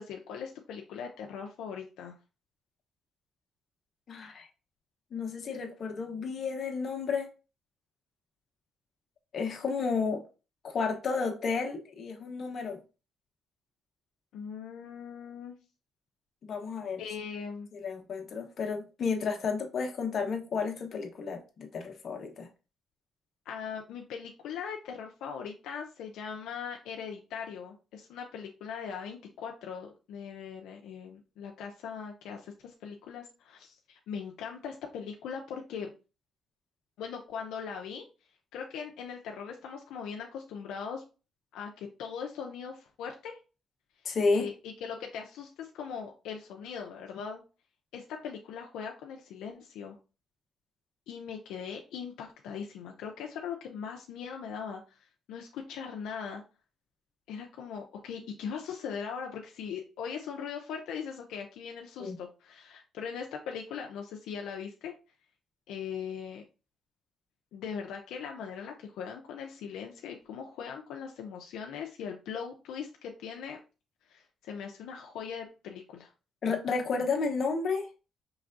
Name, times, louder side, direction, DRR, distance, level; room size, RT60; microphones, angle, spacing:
voice 1, 0.0-2.2 14.3-15.6 17.0-17.7 23.5-35.9 37.0-38.1 38.5-41.0 41.5-43.4 44.3-47.4 47.9-50.0 51.1-55.0 55.3-56.4 57.3-64.9 65.7-66.4 67.5-73.6 74.1-76.1, left 7 dB, 85° left, 0.5 m, -40 dB
voice 2, 4.1-4.5 5.1-7.3 9.3-10.2 10.6-12.8 16.5-17.0 17.7-22.5 44.0-44.5 62.0-62.2 76.4-77.9, left 4 dB, 55° left, 1.0 m, -32 dB
4.9 x 3.3 x 2.5 m
cardioid pair, 90°, 0 cm